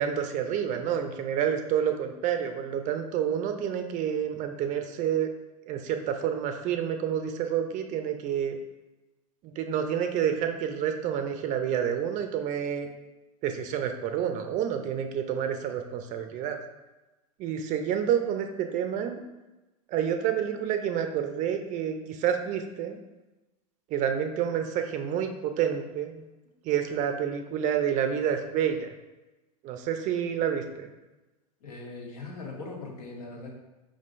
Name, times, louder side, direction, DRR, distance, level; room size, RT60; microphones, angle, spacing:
voice 1, 0.0-5.3 5.7-8.6 9.4-12.9 13.4-16.6 17.4-19.2 19.9-23.0 23.9-26.2 26.6-28.9 29.6-30.9, right 9 dB, 40° right, 6 dB, 0.5 m, -29 dB
voice 2, 31.6-33.6, left 3 dB, 70° left, 0 dB, 1.1 m, -40 dB
5.0 x 3.6 x 2.5 m, 1.1 s
hypercardioid pair, 100°, 20 cm